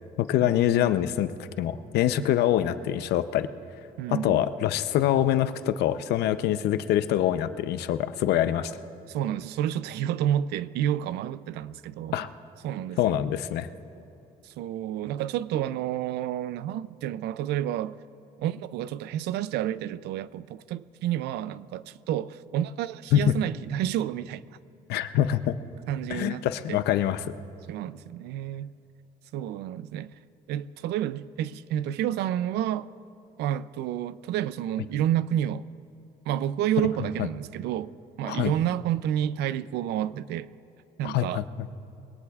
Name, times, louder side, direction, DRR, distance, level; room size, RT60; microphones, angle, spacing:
voice 1, 0.2-1.3 1.6-3.5 4.1-8.7 12.1-12.3 13.0-13.7 23.1-23.3 24.9-25.6 26.1-27.3 37.2-37.3 38.2-38.5 41.0-41.4, left 11 dB, 75° left, 0.6 m, -25 dB
voice 2, 4.0-4.4 9.1-12.3 12.6-13.3 14.4-18.0 18.4-24.4 25.9-26.4 26.7-26.8 27.7-28.7 29.3-30.1 30.5-32.9 33.4-35.6 36.3-37.9 38.2-40.5 41.0-41.4, right 11 dB, 80° right, 0.5 m, -30 dB
23.0 x 18.0 x 2.4 m
cardioid pair, 110°, 17 cm